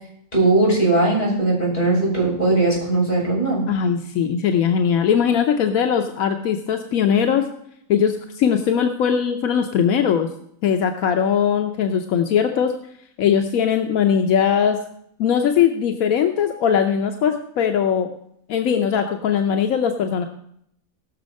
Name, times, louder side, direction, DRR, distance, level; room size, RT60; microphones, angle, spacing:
voice 1, 0.3-3.6, right 2 dB, 35° left, -6 dB, 6.9 m, -19 dB
voice 2, 3.7-7.5 7.9-10.3 10.6-12.7 13.2-14.8 15.2-18.1 18.5-20.2, left 8 dB, 85° left, 5 dB, 1.2 m, -20 dB
18.5 x 6.4 x 5.3 m, 0.73 s
omnidirectional pair, 1.4 m